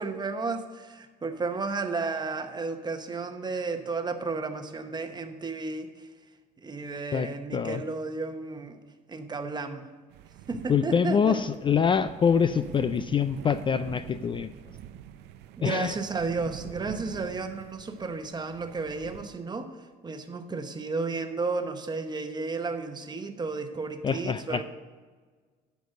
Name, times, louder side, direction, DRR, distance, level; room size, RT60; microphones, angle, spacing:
voice 1, 0.0-6.1 6.6-8.8 9.1-9.9 10.5-11.4 15.6-19.7 20.0-24.6, right 4 dB, 25° right, 7 dB, 1.0 m, -33 dB
voice 2, 7.1-7.8 10.7-14.5 15.6-15.9 24.0-24.6, left 7 dB, 30° left, 12 dB, 0.3 m, -25 dB
sound 1, 10.1-19.3, right 11 dB, 85° right, 0.5 m, -45 dB
12.0 x 5.2 x 6.5 m, 1.4 s
cardioid pair, 110°, 17 cm